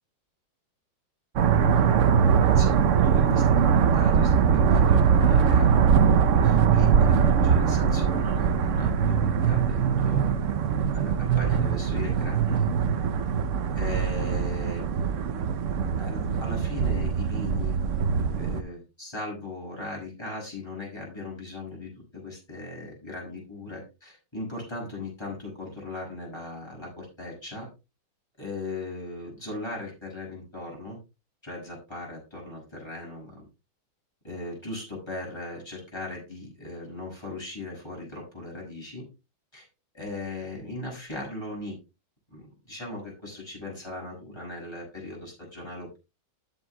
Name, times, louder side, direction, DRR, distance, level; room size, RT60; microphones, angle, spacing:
sound 1, 1.4-18.6, right 7 dB, 85° right, 0.6 m, -22 dB
voice 1, 2.3-10.4 10.9-12.7 13.7-15.5 16.0-17.8 18.4-27.7 28.4-31.0 31.4-33.4 34.2-39.1 39.5-39.7 39.9-41.8 42.3-46.0, left 2 dB, 10° left, -2 dB, 6.0 m, -38 dB
20.0 x 7.3 x 2.2 m, 0.27 s
omnidirectional pair, 2.2 m